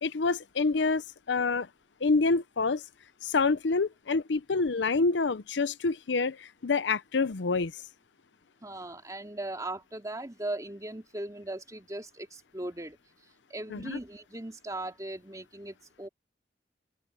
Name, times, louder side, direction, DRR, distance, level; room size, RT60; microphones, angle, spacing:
voice 1, 0.0-1.0 1.3-1.7 2.0-2.8 3.2-6.4 6.6-7.7 13.7-14.0, left 4 dB, 90° left, 0.7 m, -27 dB
voice 2, 8.6-13.0 13.5-16.1, right 1 dB, 20° right, 2.9 m, -38 dB
open air
head